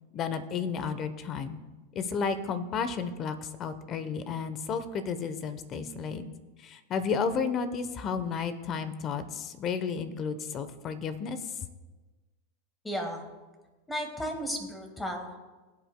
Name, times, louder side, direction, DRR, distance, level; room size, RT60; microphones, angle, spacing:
voice 1, 0.1-1.6 1.9-6.2 6.6-11.4, left 5 dB, 35° left, 12 dB, 0.9 m, -32 dB
voice 2, 12.8-13.2 13.9-15.4, equal, 10° left, 4 dB, 1.7 m, -34 dB
20.5 x 8.3 x 2.2 m, 1.2 s
supercardioid pair, 125°, 0 cm